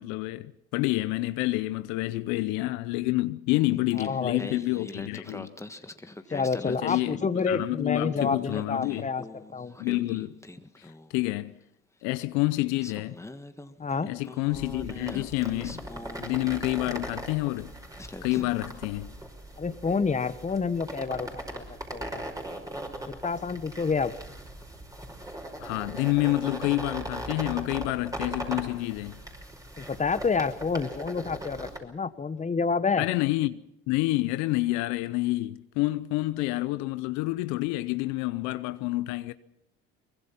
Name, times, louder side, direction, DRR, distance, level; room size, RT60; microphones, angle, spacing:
voice 1, 0.0-5.5 6.7-9.1 9.8-10.4 10.8-11.6 12.0-13.2 14.0-15.8 16.2-17.7 18.2-19.1 25.6-29.2 33.0-39.3, left 19 dB, 75° left, 0.7 m, -28 dB
Singing, 3.7-7.7 8.0-11.2 12.2-12.3 12.8-17.0 17.6-17.7 18.0-18.8, left 2 dB, 10° left, 1.5 m, -43 dB
voice 2, 4.0-4.6 6.3-9.2 9.5-9.8 13.8-14.1 19.6-21.6 21.9-22.2 23.2-24.1 29.8-33.0, left 5 dB, 25° left, 1.4 m, -28 dB
sound 1, 14.5-31.8, right 1 dB, 10° right, 5.2 m, -39 dB
23.0 x 21.0 x 5.8 m
supercardioid pair, 70°, 29 cm